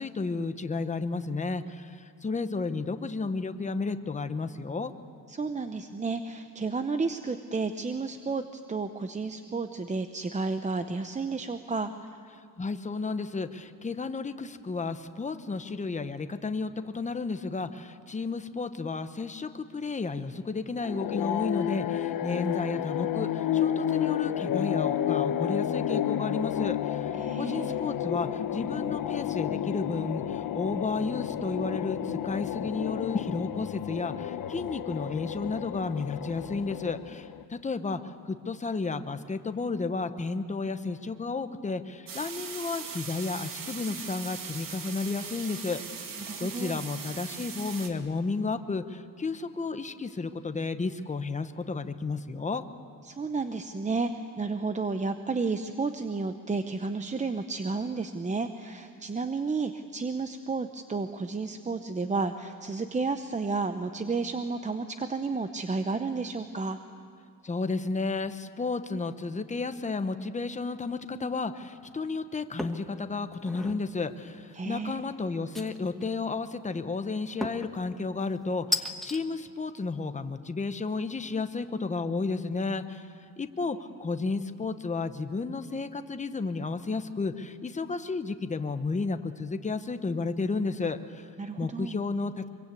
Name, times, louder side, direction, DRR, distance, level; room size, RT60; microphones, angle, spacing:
voice 1, 0.0-4.9 12.6-38.0 38.2-52.6 67.4-83.1 83.4-91.3 91.6-92.5, left 4 dB, 20° left, 9 dB, 1.0 m, -32 dB
voice 2, 5.3-11.9 27.1-27.8 46.2-46.8 53.1-66.8 74.5-75.0 91.4-92.0, right 4 dB, 20° right, 8 dB, 0.8 m, -32 dB
sound 1, 20.8-37.4, left 10 dB, 70° left, 1.0 m, -31 dB
sound 2, 42.1-47.9, right 6 dB, 70° right, 2.4 m, -40 dB
sound 3, 72.6-72.9 73.3-73.8 75.5-76.1 77.4-77.8 78.7-79.2, left 1 dB, ahead, 1.3 m, -33 dB
25.0 x 23.5 x 8.5 m, 2.4 s
cardioid pair, 145°, 35 cm